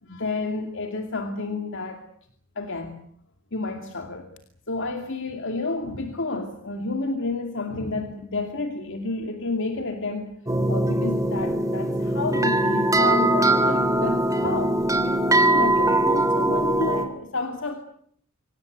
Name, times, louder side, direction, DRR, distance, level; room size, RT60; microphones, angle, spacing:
voice 1, 0.0-2.0 2.6-3.0 3.5-4.3 4.7-10.3 10.7-17.7, left 3 dB, 65° left, 6 dB, 2.5 m, -30 dB
sound 1, 10.5-17.0, right 1 dB, 15° right, 3.1 m, -21 dB
26.0 x 18.0 x 9.4 m, 0.65 s
head